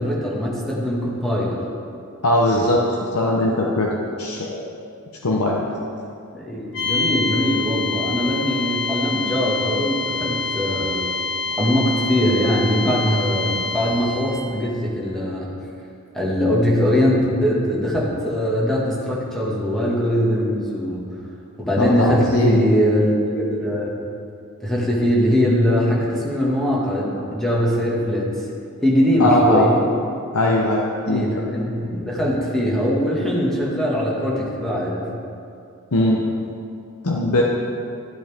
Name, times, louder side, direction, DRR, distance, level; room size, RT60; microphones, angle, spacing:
voice 1, 0.0-1.6 6.3-11.0 11.6-15.5 16.1-21.0 21.6-23.9 24.6-28.3 28.8-29.8 31.1-35.1, equal, ahead, -6 dB, 1.9 m, -21 dB
voice 2, 2.2-2.8 3.1-3.9 4.2-4.7 5.2-5.6 21.8-22.7 29.2-29.7 30.3-31.4 35.9-36.2 37.0-37.4, left 1 dB, 90° left, -2 dB, 0.9 m, -20 dB
sound 1, 6.7-14.5, left 4 dB, 55° left, 1.2 m, -26 dB
13.5 x 8.0 x 3.6 m, 2.5 s
head